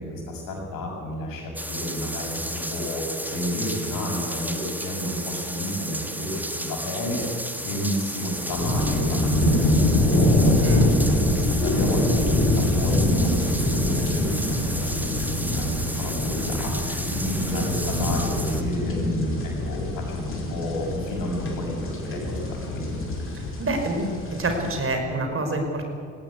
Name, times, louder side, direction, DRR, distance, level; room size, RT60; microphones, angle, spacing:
voice 1, 0.0-7.2 7.6-10.8 11.3-23.0, left 1 dB, 60° left, 0 dB, 7.1 m, -31 dB
sound 1, 1.6-18.6, right 1 dB, 5° right, 2.1 m, -33 dB
sound 2, 8.6-24.8, left 1 dB, 35° left, 5.5 m, -24 dB
voice 2, 10.6-10.9 23.6-24.1 24.4-25.9, right 2 dB, 35° right, 4 dB, 5.0 m, -26 dB
19.0 x 17.0 x 8.3 m, 2.5 s
hypercardioid pair, 55°, 38 cm